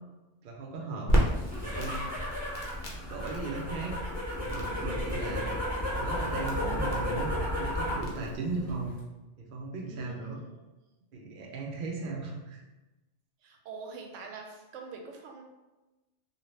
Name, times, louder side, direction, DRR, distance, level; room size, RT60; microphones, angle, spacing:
voice 1, 0.4-1.1 1.6-2.0 3.1-3.9 4.4-5.5 5.9-8.9 9.4-10.4 11.1-12.6, right 3 dB, 55° right, -1 dB, 0.6 m, -37 dB
Crackle, 1.1-8.4, equal, 50° left, 0.7 m, -34 dB
sound 1, 1.3-8.1 8.4-9.0, left 1 dB, 10° right, 1.0 m, -33 dB
voice 2, 2.7-3.2 9.9-10.7 13.4-15.4, right 4 dB, 90° right, 2 dB, 0.9 m, -46 dB
2.7 x 2.4 x 3.1 m, 1.1 s
omnidirectional pair, 1.2 m